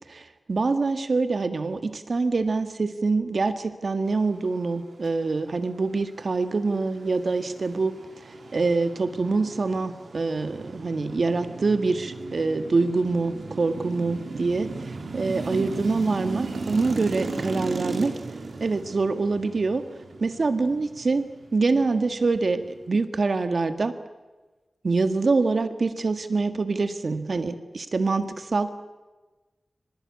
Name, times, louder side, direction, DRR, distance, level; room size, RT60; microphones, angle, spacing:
voice 1, 0.1-8.0 8.5-18.2 18.6-19.9 20.2-23.9 24.8-28.7, right 3 dB, 65° right, 9 dB, 1.7 m, -25 dB
sound 1, 6.1-22.9, right 3 dB, 85° right, 2.7 m, -36 dB
24.0 x 20.0 x 8.4 m, 1.2 s
wide cardioid pair, 75°, 0 cm